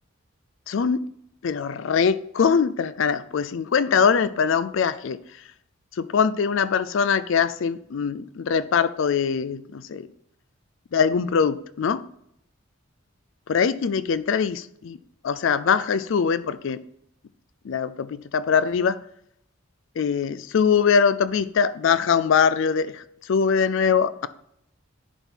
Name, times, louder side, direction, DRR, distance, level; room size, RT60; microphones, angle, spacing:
voice 1, 0.7-1.0 1.4-5.2 5.9-10.1 10.9-12.0 13.5-15.0 15.2-16.8 17.6-19.0 20.0-24.3, left 6 dB, 60° left, 0.4 m, -22 dB
11.0 x 3.7 x 4.5 m
head